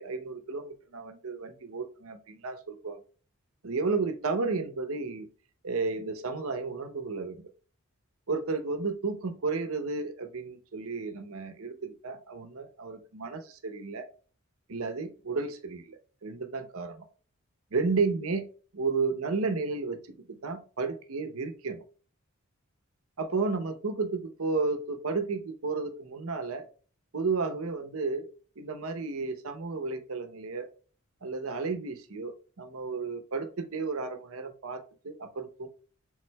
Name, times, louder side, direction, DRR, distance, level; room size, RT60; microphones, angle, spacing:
voice 1, 0.0-3.0 3.6-5.3 5.6-7.5 8.3-14.1 14.7-17.1 17.7-18.5 18.7-21.8 23.2-26.7 27.1-28.3 28.6-30.7 31.2-35.7, right 4 dB, 75° right, 8 dB, 0.8 m, -32 dB
6.2 x 3.7 x 2.2 m, 0.39 s
head